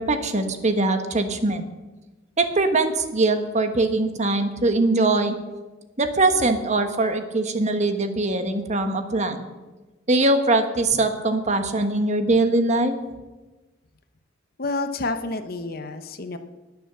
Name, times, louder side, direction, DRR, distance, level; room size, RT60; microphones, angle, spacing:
voice 1, 0.0-1.6 2.4-5.4 6.0-9.4 10.1-13.0, right 2 dB, 35° right, 8 dB, 1.2 m, -22 dB
voice 2, 14.6-16.4, left 2 dB, 50° left, 9 dB, 1.0 m, -29 dB
19.5 x 7.1 x 6.8 m, 1.2 s
head